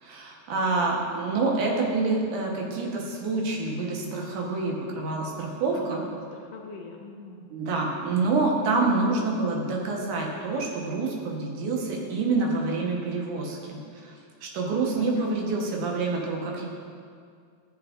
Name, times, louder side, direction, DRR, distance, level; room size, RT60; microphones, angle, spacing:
voice 1, 0.0-6.0 7.5-13.8 14.0-14.1 14.4-16.7, right 3 dB, 90° right, -1 dB, 2.7 m, -27 dB
voice 2, 5.7-7.4 15.0-15.5, left 3 dB, 75° left, 1 dB, 1.7 m, -43 dB
13.5 x 7.4 x 2.5 m, 2.2 s
omnidirectional pair, 3.5 m